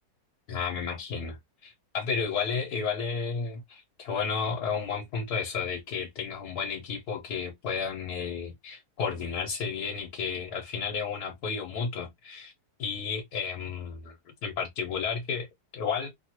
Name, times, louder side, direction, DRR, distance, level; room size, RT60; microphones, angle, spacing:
voice 1, 0.5-1.4 1.6-12.5 12.8-14.1 14.4-15.5 15.7-16.1, left 6 dB, 75° left, 1.3 m, -32 dB
3.0 x 2.4 x 2.7 m
omnidirectional pair, 1.7 m